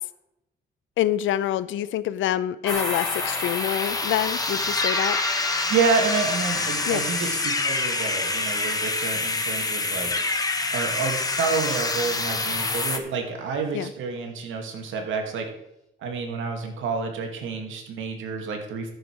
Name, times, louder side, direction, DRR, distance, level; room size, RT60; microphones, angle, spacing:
voice 1, 1.0-5.2 6.9-7.0 13.7-13.9, left 12 dB, 75° left, 17 dB, 0.6 m, -26 dB
sound 1, 2.6-11.1, left 1 dB, ahead, 4.7 m, -36 dB
sound 2, 2.7-13.0, left 3 dB, 20° left, 1.2 m, -27 dB
voice 2, 5.7-10.3 10.7-15.5 16.0-18.9, right 5 dB, 80° right, 4 dB, 2.2 m, -29 dB
13.5 x 6.7 x 4.8 m, 0.87 s
cardioid pair, 90°, 20 cm